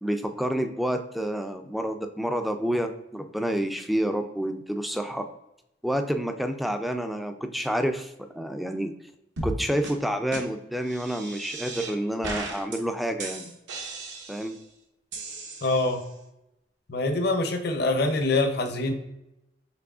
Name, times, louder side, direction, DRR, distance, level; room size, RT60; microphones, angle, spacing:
voice 1, 0.0-5.3 5.8-8.9 9.4-13.5 14.3-14.6, equal, ahead, 6 dB, 0.3 m, -29 dB
sound 1, 9.4-9.6 9.8-9.9 10.3-10.4 10.9-11.9 12.2-12.8 13.2-14.6 15.1-16.1, right 2 dB, 75° right, 0.9 m, -36 dB
voice 2, 15.6-16.0 16.9-18.9, left 2 dB, 60° left, 5 dB, 0.7 m, -24 dB
6.0 x 3.3 x 2.4 m, 0.87 s
head